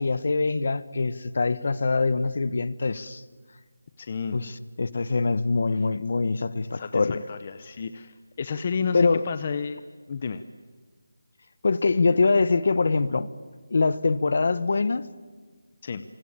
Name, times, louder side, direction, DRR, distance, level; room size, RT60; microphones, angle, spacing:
voice 1, 0.0-3.2 4.3-4.5 4.8-7.2 8.9-9.2 11.6-13.3 13.7-15.1, left 3 dB, 45° left, 1.2 m, -23 dB
voice 2, 4.0-4.4 6.7-9.8 10.1-10.4 15.8-16.0, left 5 dB, 25° left, 0.8 m, -31 dB
27.0 x 24.0 x 8.9 m
figure-of-eight pair, 175°, 0 cm